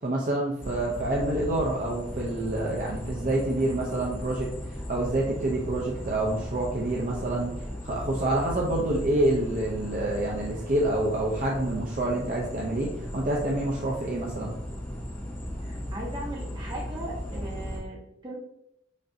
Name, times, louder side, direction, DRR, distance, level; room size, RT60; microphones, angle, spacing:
voice 1, 0.0-4.5 4.9-7.5 7.8-14.5, right 1 dB, 45° right, -3 dB, 0.5 m, -27 dB
sound 1, 0.6-17.8, equal, 10° left, 0.7 m, -37 dB
voice 2, 15.6-18.4, right 1 dB, 25° right, -4 dB, 1.1 m, -38 dB
5.2 x 2.6 x 2.7 m, 0.80 s
head